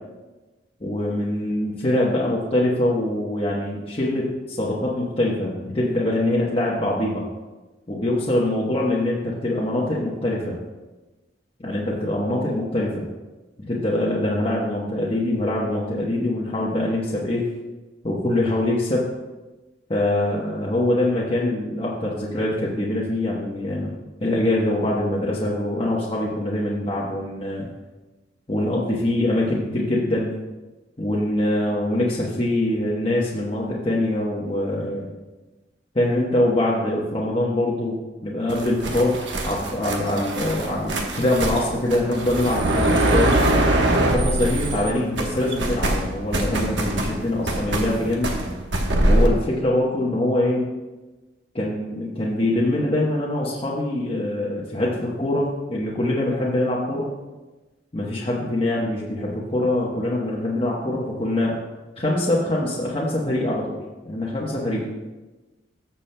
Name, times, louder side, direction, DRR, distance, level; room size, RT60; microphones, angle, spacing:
voice 1, 0.8-7.2 7.9-10.6 11.6-13.0 13.7-17.5 18.0-19.1 19.9-23.9 24.2-27.7 28.5-30.3 31.0-35.1 35.9-37.9 38.2-43.4 44.1-48.3 49.1-50.6 51.5-57.1 57.9-61.6 62.0-63.8 64.0-64.8, left 1 dB, 30° left, -5 dB, 1.1 m, -23 dB
sound 1, 38.5-44.9 45.2-49.3, right 1 dB, 80° right, 1.1 m, -23 dB
14.0 x 7.1 x 2.2 m, 1.1 s
head